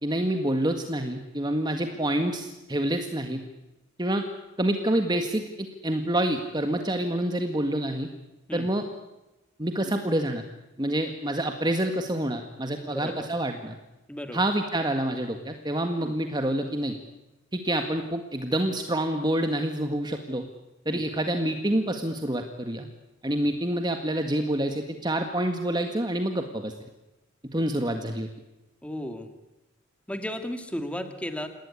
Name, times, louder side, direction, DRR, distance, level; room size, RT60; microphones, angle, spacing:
voice 1, 0.0-3.4 4.0-4.2 4.6-8.1 8.5-8.8 9.6-10.4 10.8-13.8 14.3-17.0 17.5-20.5 20.9-22.9 23.2-26.7 27.5-28.3, right 1 dB, 20° right, 5 dB, 1.8 m, -27 dB
voice 2, 12.8-13.3 14.1-14.4 16.0-16.1 20.9-21.1 28.8-29.3 30.1-31.5, left 1 dB, 5° left, 7 dB, 2.3 m, -34 dB
28.5 x 19.0 x 9.8 m, 0.99 s
head